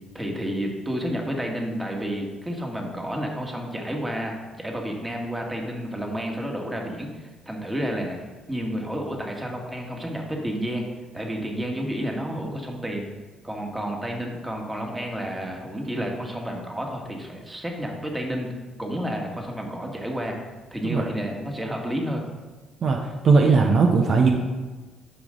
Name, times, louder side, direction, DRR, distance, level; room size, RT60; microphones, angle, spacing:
voice 1, 0.1-8.2 8.5-10.8 11.1-13.1 13.4-18.5 18.8-20.4 20.7-22.2, equal, 15° right, 1 dB, 1.7 m, -30 dB
voice 2, 22.8-24.3, right 4 dB, 55° right, 2 dB, 0.8 m, -19 dB
10.5 x 5.2 x 3.8 m, 1.3 s
supercardioid pair, 75°, 0 cm